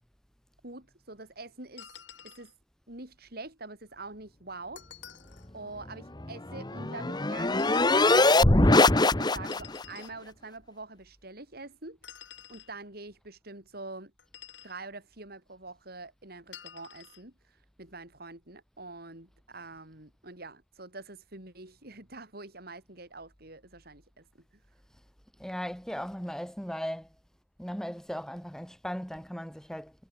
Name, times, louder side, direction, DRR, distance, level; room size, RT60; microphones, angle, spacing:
voice 1, 0.6-1.9 2.2-2.5 2.9-4.9 5.5-12.0 12.5-14.1 14.6-24.5, right 3 dB, 60° right, 5.7 m, -45 dB
sound 1, 1.8-2.5 4.8-5.5 7.5-8.0 9.5-10.2 12.0-12.7 14.2-14.8 16.5-17.2, left 10 dB, 90° left, 6.2 m, -49 dB
sound 2, 6.2-9.8, left 2 dB, 25° left, 1.4 m, -22 dB
voice 2, 25.4-27.1 27.6-29.9, equal, 5° left, 2.1 m, -37 dB
head